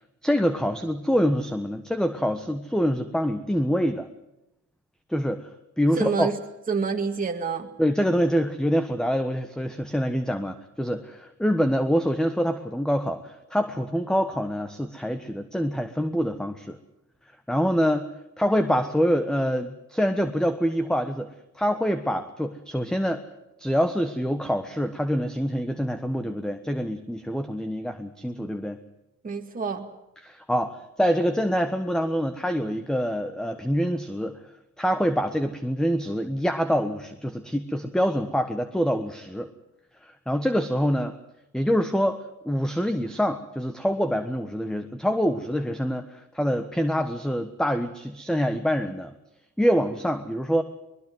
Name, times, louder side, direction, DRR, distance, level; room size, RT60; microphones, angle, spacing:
voice 1, 0.2-4.1 5.1-5.5 5.8-6.3 7.8-16.8 17.5-18.1 18.4-21.3 21.5-23.2 23.6-28.8 30.2-34.4 34.8-39.5 40.0-41.2 41.5-49.1 49.6-50.6, equal, ahead, 10 dB, 1.3 m, -25 dB
voice 2, 6.0-6.3 6.7-7.7 29.2-29.9, right 5 dB, 30° right, 2 dB, 2.1 m, -27 dB
21.5 x 21.0 x 7.9 m, 0.90 s
cardioid pair, 90°, 30 cm